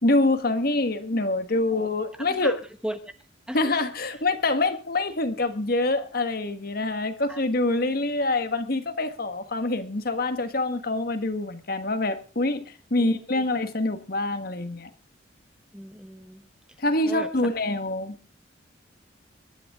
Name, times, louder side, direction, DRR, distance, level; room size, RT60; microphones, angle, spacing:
voice 1, 0.0-2.6 3.5-14.9 16.8-18.2, left 2 dB, 50° left, 1.5 m, -25 dB
voice 2, 2.3-3.0 3.5-4.2 7.3-7.4 13.0-13.5 15.7-16.4 17.0-17.5, right 1 dB, 5° right, 1.1 m, -38 dB
22.5 x 11.0 x 3.7 m
head